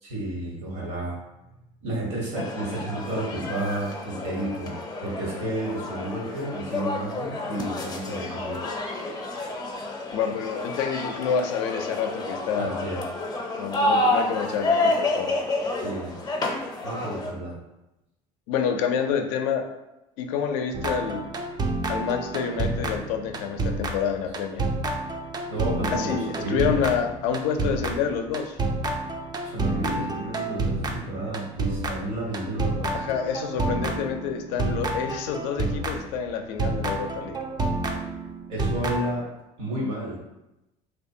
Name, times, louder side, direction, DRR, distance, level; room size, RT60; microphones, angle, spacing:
voice 1, 0.0-1.2 1.8-4.7 5.0-8.6 12.6-13.0 15.7-16.1 16.8-17.6 25.5-26.8 29.4-32.9 38.5-39.2 39.6-40.2, right 1 dB, 80° right, -4 dB, 1.2 m, -31 dB
sound 1, 2.3-17.3, left 2 dB, 25° left, 0.5 m, -29 dB
voice 2, 10.1-12.8 13.5-15.3 18.5-19.7 20.2-21.3 21.9-24.7 25.9-28.6 32.9-37.4, left 7 dB, 75° left, 5 dB, 0.4 m, -28 dB
sound 2, 20.7-36.2 36.6-39.1, right 2 dB, 25° right, 0.4 m, -29 dB
2.6 x 2.3 x 2.6 m, 0.94 s
hypercardioid pair, 75°, 16 cm